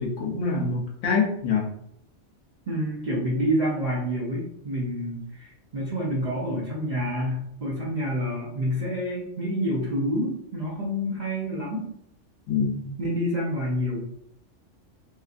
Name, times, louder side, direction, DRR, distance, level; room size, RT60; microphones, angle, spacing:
voice 1, 0.0-1.7 12.5-13.0, left 5 dB, 80° left, -1 dB, 1.0 m, -25 dB
voice 2, 2.7-11.9 13.0-14.0, equal, 45° right, -6 dB, 0.6 m, -28 dB
2.8 x 2.5 x 2.4 m, 0.73 s
omnidirectional pair, 1.3 m